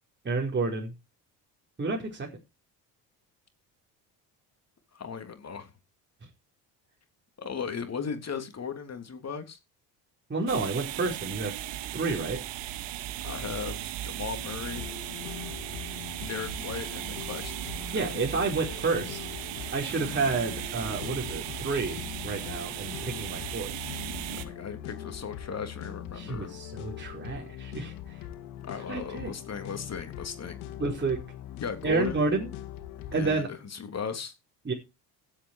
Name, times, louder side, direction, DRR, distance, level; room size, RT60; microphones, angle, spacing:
voice 1, 0.2-0.9 1.8-2.3 10.3-11.5 11.9-12.4 17.9-19.2 19.7-23.7 26.2-28.1 28.9-29.3 30.8-31.2 31.8-32.5 33.1-33.5 34.6-34.7, right 3 dB, 25° right, 4.8 m, -30 dB
voice 2, 4.9-5.7 7.4-9.6 13.2-14.9 16.3-18.1 24.3-26.6 28.7-30.6 31.6-32.3 33.1-34.3, left 6 dB, 35° left, 3.4 m, -37 dB
sound 1, 10.5-24.4, right 13 dB, 75° right, 2.2 m, -37 dB
sound 2, 14.5-33.4, left 11 dB, 85° left, 2.7 m, -42 dB
16.0 x 8.6 x 4.8 m
supercardioid pair, 80°, 44 cm